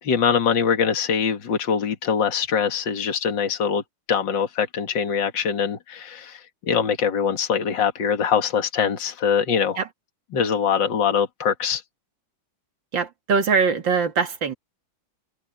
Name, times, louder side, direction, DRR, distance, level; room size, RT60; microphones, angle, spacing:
voice 1, 0.0-3.8 4.1-9.8 10.3-11.8, left 7 dB, 65° left, 2.5 m, -23 dB
voice 2, 12.9-14.5, right 5 dB, 65° right, 2.7 m, -22 dB
omnidirectional pair, 2.2 m